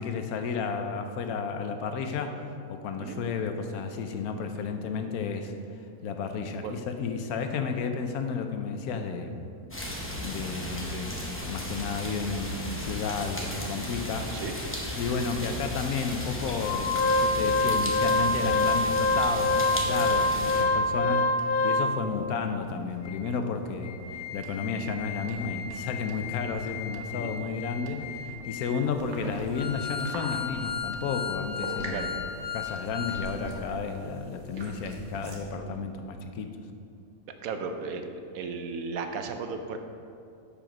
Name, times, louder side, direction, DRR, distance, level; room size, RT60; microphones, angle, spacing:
voice 1, 0.0-2.4 2.7-5.5 6.0-9.4 10.2-14.3 14.9-32.1 32.5-36.5, left 5 dB, 90° left, 6 dB, 1.1 m, -32 dB
sound 1, 9.7-20.6, equal, 10° left, 0.6 m, -35 dB
Organ, 16.6-22.2 22.7-22.8 23.0-23.2 23.7-33.3 33.6-33.7, left 2 dB, 50° left, 0.7 m, -28 dB
sound 2, 28.9-35.5, right 1 dB, 55° right, 1.4 m, -43 dB
voice 2, 37.4-38.1 38.3-39.8, right 5 dB, 75° right, 6 dB, 1.1 m, -35 dB
7.5 x 5.1 x 5.2 m, 2.5 s
omnidirectional pair, 1.5 m